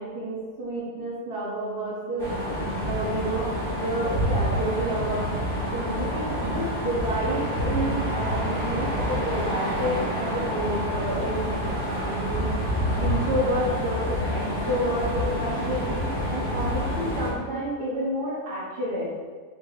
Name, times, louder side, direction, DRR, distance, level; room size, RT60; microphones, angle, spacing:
voice 1, 0.0-2.3 2.8-5.3 5.7-11.6 12.0-12.5 13.0-15.9 16.3-19.0, right 1 dB, 60° right, -8 dB, 1.6 m, -30 dB
sound 1, 2.2-17.3, equal, 30° right, 1.4 m, -28 dB
4.5 x 2.7 x 3.9 m, 1.5 s
omnidirectional pair, 2.0 m